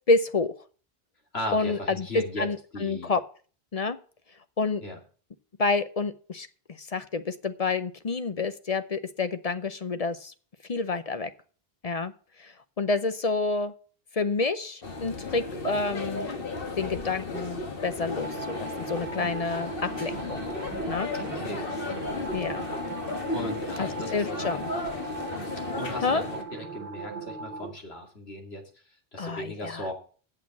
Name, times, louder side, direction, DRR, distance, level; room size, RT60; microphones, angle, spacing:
voice 1, 0.1-0.5 1.5-2.1 2.4-3.2 3.7-4.0 4.6-4.8 5.6-6.5 6.8-10.3 10.7-11.3 11.8-12.1 12.4-13.7 14.1-16.3 16.8-20.4 20.9-21.1 22.3-22.7 23.8-24.7 26.0-26.2 29.2-29.9, left 3 dB, 45° left, 11 dB, 0.6 m, -28 dB
voice 2, 1.3-2.5 2.7-3.1 4.8-5.0 21.1-21.7 23.3-24.8 25.8-28.6 29.1-29.9, left 1 dB, 80° left, 2 dB, 2.6 m, -37 dB
sound 1, 14.8-26.4, left 3 dB, 60° left, 1.6 m, -34 dB
sound 2, 18.2-27.7, right 4 dB, 85° right, 1.3 m, -38 dB
8.6 x 6.7 x 7.0 m, 0.41 s
omnidirectional pair, 1.1 m